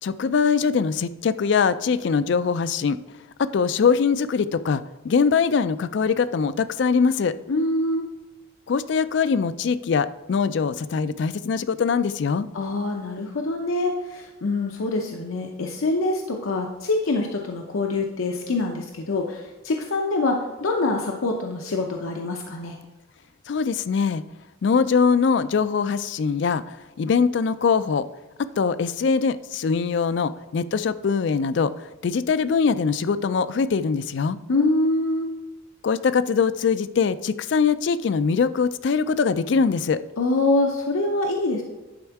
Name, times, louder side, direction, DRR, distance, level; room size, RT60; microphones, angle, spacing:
voice 1, 0.0-3.0 3.4-7.3 8.7-12.5 23.5-24.2 24.6-28.1 28.4-34.4 35.8-40.0, left 5 dB, 55° left, 15 dB, 0.3 m, -22 dB
voice 2, 7.5-8.1 12.5-22.8 34.5-35.3 40.2-41.6, left 2 dB, 80° left, 2 dB, 0.7 m, -25 dB
10.5 x 4.4 x 4.6 m, 1.1 s
head